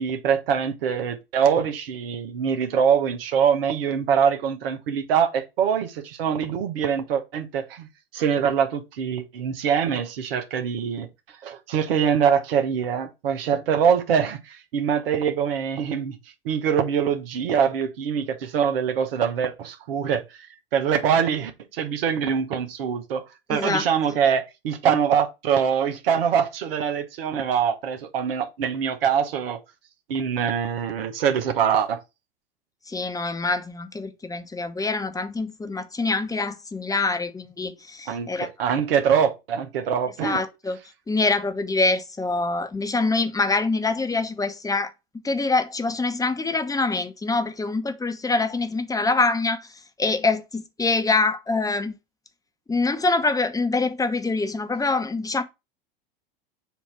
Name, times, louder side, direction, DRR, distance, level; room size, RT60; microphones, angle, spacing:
voice 1, 0.0-7.9 8.1-16.2 16.4-23.2 23.5-29.6 30.1-32.0 38.1-40.4, right 7 dB, 75° right, 1.2 m, -24 dB
voice 2, 23.5-23.9 32.9-38.5 40.2-40.8 41.1-44.9 45.2-49.7 50.0-51.9 52.7-55.4, left 3 dB, 10° left, 1.0 m, -25 dB
7.5 x 2.9 x 5.8 m
hypercardioid pair, 85°, 29 cm